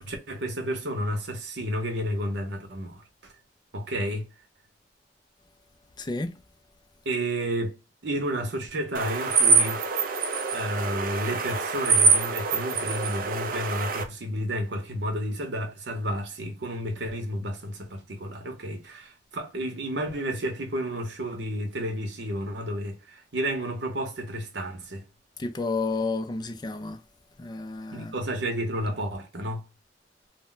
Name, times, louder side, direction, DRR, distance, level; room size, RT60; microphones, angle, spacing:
voice 1, 0.0-3.3 3.7-4.3 7.1-7.8 8.0-9.8 10.5-25.0 27.9-29.6, equal, 75° right, 0.8 m, -31 dB
voice 2, 6.0-6.3 25.4-27.0 27.4-28.1, left 3 dB, 25° left, 0.3 m, -31 dB
sound 1, 8.9-14.0, right 4 dB, 50° right, 0.5 m, -24 dB
2.1 x 2.0 x 3.8 m
head